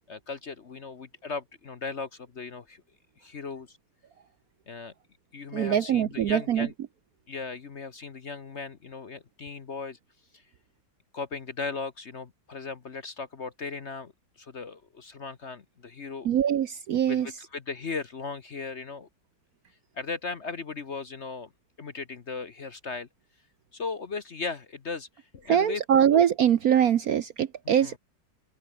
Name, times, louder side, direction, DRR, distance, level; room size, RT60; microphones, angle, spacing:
voice 1, 0.1-2.8 3.2-3.8 4.7-4.9 5.3-6.7 7.3-10.0 10.3-10.4 11.1-16.3 17.0-19.1 19.9-21.5 21.8-23.1 23.7-26.1 27.7-27.9, left 4 dB, 40° left, 1.2 m, -37 dB
voice 2, 5.5-6.7 16.2-17.3 25.5-28.0, right 9 dB, 60° right, 1.1 m, -23 dB
omnidirectional pair, 2.1 m